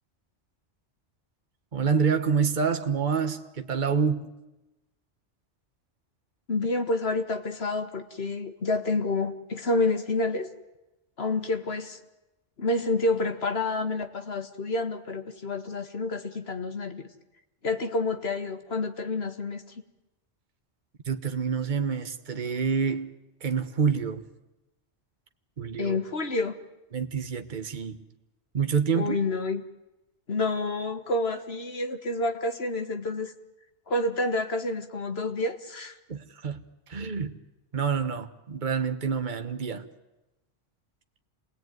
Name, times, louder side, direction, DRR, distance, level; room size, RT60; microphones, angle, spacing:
voice 1, 1.7-4.3 21.1-23.1 23.4-24.2 25.6-26.0 26.9-28.0 28.5-29.2 36.1-36.6 36.9-37.4 37.7-39.9, right 6 dB, 45° right, 8 dB, 1.4 m, -27 dB
voice 2, 6.5-10.5 11.2-12.0 12.6-17.1 17.6-19.6 25.8-26.5 28.9-29.7 30.3-33.3 33.9-36.0, left 2 dB, 60° left, 8 dB, 2.0 m, -28 dB
27.5 x 20.0 x 9.4 m, 0.99 s
omnidirectional pair, 1.2 m